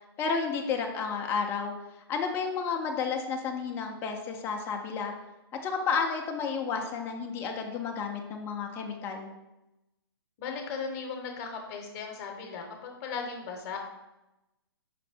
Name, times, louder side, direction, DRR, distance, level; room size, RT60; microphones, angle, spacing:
voice 1, 0.2-1.7 2.1-5.1 5.6-9.3, left 5 dB, 15° left, 2 dB, 0.4 m, -31 dB
voice 2, 10.4-13.8, left 5 dB, 40° left, 3 dB, 0.8 m, -37 dB
5.0 x 2.5 x 3.4 m, 0.97 s
hypercardioid pair, 125°, 13 cm